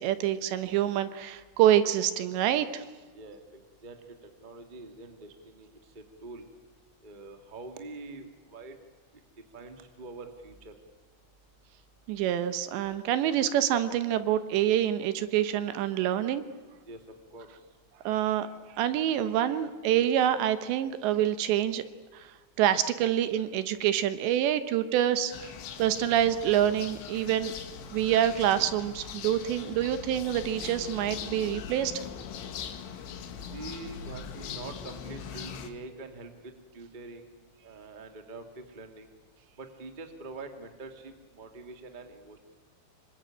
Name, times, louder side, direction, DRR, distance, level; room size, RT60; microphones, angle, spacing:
voice 1, 0.0-2.8 12.1-16.4 18.0-18.5 18.8-21.8 22.1-22.3 22.6-25.5 25.8-27.5 27.9-32.0, right 11 dB, 75° right, 12 dB, 3.1 m, -26 dB
voice 2, 3.1-6.4 7.0-8.8 9.5-10.7 16.8-17.0 17.3-17.5 33.4-37.3 37.6-39.1 39.6-42.4, right 3 dB, 20° right, 5 dB, 1.1 m, -45 dB
sound 1, 25.3-35.7, left 7 dB, 75° left, 3.9 m, -41 dB
26.5 x 23.5 x 9.0 m, 1.3 s
omnidirectional pair, 5.4 m